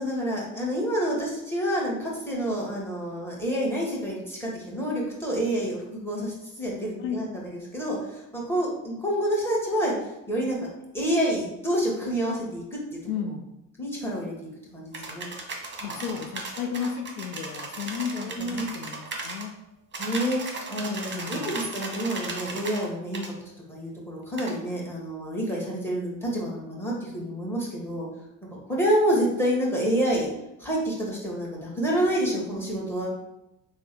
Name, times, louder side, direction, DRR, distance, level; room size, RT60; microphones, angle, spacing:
voice 1, 0.0-10.6 10.9-13.0 13.8-14.3 14.7-15.3 15.8-16.0 18.2-18.7 20.0-20.4 20.7-23.3 23.7-28.1 28.5-30.3 30.6-33.1, equal, 5° left, -3 dB, 1.5 m, -28 dB
voice 2, 13.0-13.4 15.8-19.6 21.1-21.6, left 7 dB, 80° left, 5 dB, 0.6 m, -33 dB
sound 1, 14.9-19.5 19.9-22.9 23.1-23.3 24.4-24.6, right 3 dB, 25° right, 1.0 m, -36 dB
3.3 x 2.2 x 4.4 m, 0.89 s
hypercardioid pair, 65°, 41 cm